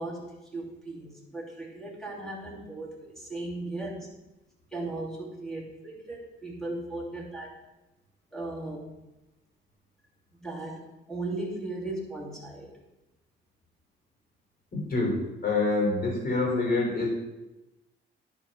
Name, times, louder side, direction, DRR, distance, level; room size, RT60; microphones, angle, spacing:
voice 1, 0.0-4.1 4.7-7.5 8.3-8.9 10.4-10.8 11.1-12.7, right 2 dB, ahead, -3 dB, 2.9 m, -37 dB
voice 2, 14.7-17.1, left 3 dB, 50° left, 0 dB, 3.4 m, -26 dB
10.5 x 4.6 x 5.1 m, 1.0 s
cardioid pair, 90°, 20 cm